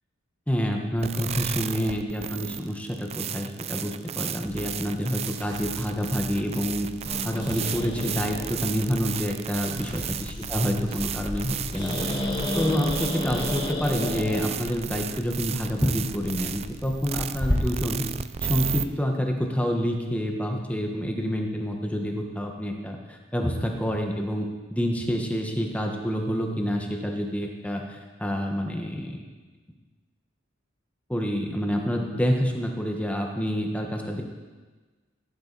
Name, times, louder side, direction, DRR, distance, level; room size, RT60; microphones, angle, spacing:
voice 1, 0.5-6.9 7.2-18.1 18.4-29.2 31.1-34.2, equal, 5° left, 2 dB, 1.2 m, -28 dB
sound 1, 1.0-18.8, right 9 dB, 30° right, 0.4 m, -34 dB
sound 2, 4.4-13.6, right 1 dB, 65° right, 1.4 m, -45 dB
Growling, 7.0-17.5, left 1 dB, 25° left, 1.6 m, -33 dB
15.0 x 10.5 x 4.1 m, 1.3 s
head